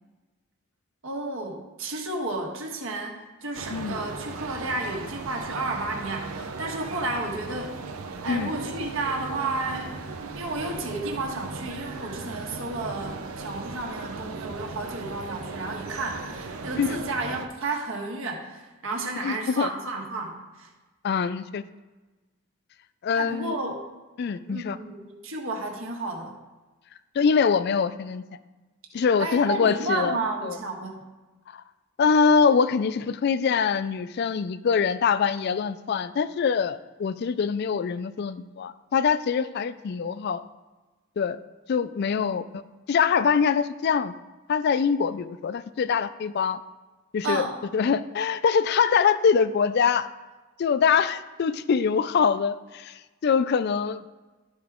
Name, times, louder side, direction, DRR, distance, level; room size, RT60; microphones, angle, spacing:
voice 1, 1.0-7.8 8.2-10.0 10.3-20.7 23.1-23.8 24.5-26.4 29.2-31.0 42.2-42.4 47.2-47.5, right 2 dB, 65° right, 0 dB, 1.4 m, -32 dB
sound 1, 3.5-17.5, right 3 dB, 85° right, 0.7 m, -37 dB
voice 2, 19.2-19.7 21.0-21.6 23.0-23.5 24.2-24.8 27.2-28.2 28.9-30.2 30.4-30.6 31.5-31.6 32.0-40.4 41.2-41.4 41.7-42.6 42.9-44.1 44.5-46.6 47.1-47.5 47.7-50.1 50.6-54.1, left 6 dB, 50° left, 15 dB, 0.3 m, -24 dB
12.5 x 4.7 x 3.6 m, 1.2 s
head